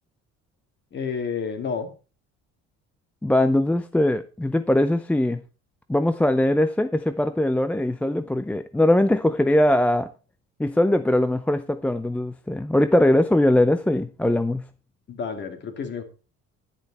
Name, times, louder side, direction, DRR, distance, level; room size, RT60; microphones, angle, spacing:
voice 1, 0.9-1.9 15.1-16.0, left 6 dB, 40° left, 2.7 m, -30 dB
voice 2, 3.2-5.4 5.9-10.1 10.6-14.6, left 1 dB, 5° left, 0.5 m, -21 dB
11.0 x 10.5 x 4.3 m
cardioid pair, 145°, 29 cm